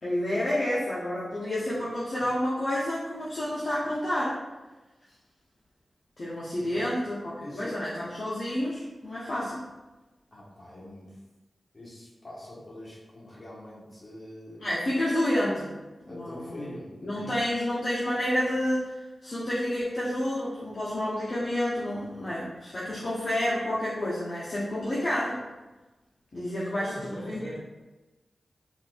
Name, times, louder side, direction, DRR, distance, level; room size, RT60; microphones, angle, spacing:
voice 1, 0.0-4.4 6.2-9.6 14.6-15.7 16.1-16.7 17.0-25.4 26.3-27.5, left 1 dB, 60° left, -8 dB, 0.6 m, -29 dB
voice 2, 6.5-6.9 7.4-7.8 10.3-11.1 11.7-14.7 16.1-17.3 26.7-27.6, left 1 dB, 45° left, -6 dB, 1.2 m, -43 dB
3.9 x 2.4 x 2.3 m, 1.1 s
cardioid pair, 50°, 0 cm